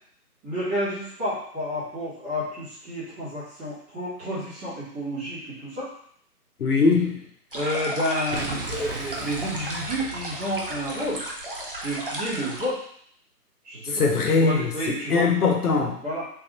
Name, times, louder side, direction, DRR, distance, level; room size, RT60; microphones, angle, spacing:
voice 1, 0.4-5.9 7.5-11.2 11.7-12.8 13.6-15.3 16.0-16.2, equal, 10° right, -15 dB, 0.9 m, -30 dB
voice 2, 6.6-7.2 13.9-14.7 15.1-16.0, left 4 dB, 70° left, 2 dB, 0.9 m, -21 dB
sound 1, 7.5-12.7, right 1 dB, 40° right, 0.4 m, -35 dB
Boom, 8.3-11.3, right 2 dB, 65° right, 0.9 m, -37 dB
3.6 x 2.7 x 2.9 m, 0.64 s
hypercardioid pair, 160°, 47 cm